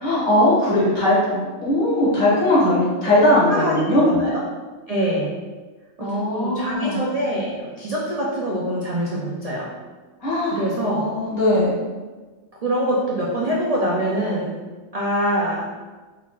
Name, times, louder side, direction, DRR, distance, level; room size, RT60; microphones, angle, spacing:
voice 1, 0.0-4.1 6.0-7.0 10.2-10.6 10.9-11.7, left 1 dB, 85° left, -8 dB, 2.1 m, -19 dB
voice 2, 3.5-4.4 4.9-5.4 6.0-9.7 10.4-11.1 12.6-14.6 14.9-15.7, right 1 dB, 70° right, -4 dB, 0.3 m, -24 dB
4.2 x 3.8 x 2.4 m, 1.3 s
omnidirectional pair, 1.4 m